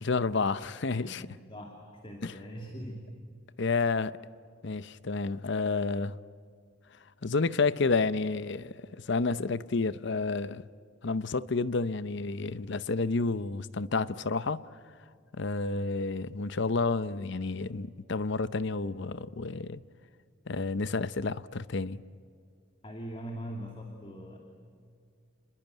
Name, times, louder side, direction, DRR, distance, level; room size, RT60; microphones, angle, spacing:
voice 1, 0.0-1.3 2.2-2.3 3.6-4.2 4.6-6.2 7.2-10.6 11.0-14.6 15.3-19.8 20.5-22.0, left 3 dB, 60° left, 0.7 m, -30 dB
voice 2, 1.0-3.0 22.8-24.4, equal, 25° left, 2.7 m, -42 dB
29.5 x 22.0 x 9.2 m
head